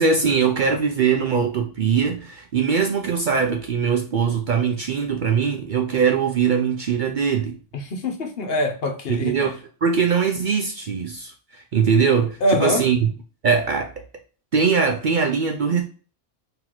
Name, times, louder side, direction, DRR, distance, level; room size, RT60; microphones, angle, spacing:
voice 1, 0.0-7.6 9.1-13.1 13.4-13.9 14.5-15.8, right 6 dB, 60° right, 0.6 m, -21 dB
voice 2, 7.7-9.4 12.4-12.8, left 1 dB, 60° left, 1.0 m, -23 dB
4.5 x 2.9 x 3.9 m
omnidirectional pair, 1.2 m